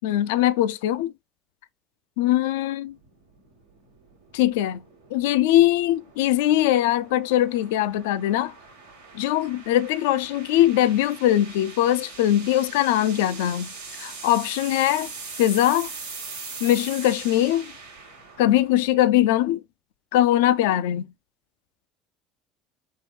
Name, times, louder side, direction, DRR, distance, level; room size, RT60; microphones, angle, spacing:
voice 1, 0.0-1.1 2.2-2.9 4.3-4.8 5.1-8.5 9.1-13.7 14.0-15.1 15.4-15.9 16.6-17.7 18.4-19.6 20.1-21.1, left 13 dB, 75° left, 0.3 m, -21 dB
sound 1, 2.9-19.2, right 4 dB, 90° right, 1.2 m, -41 dB
3.6 x 2.6 x 4.3 m
hypercardioid pair, 65°, 0 cm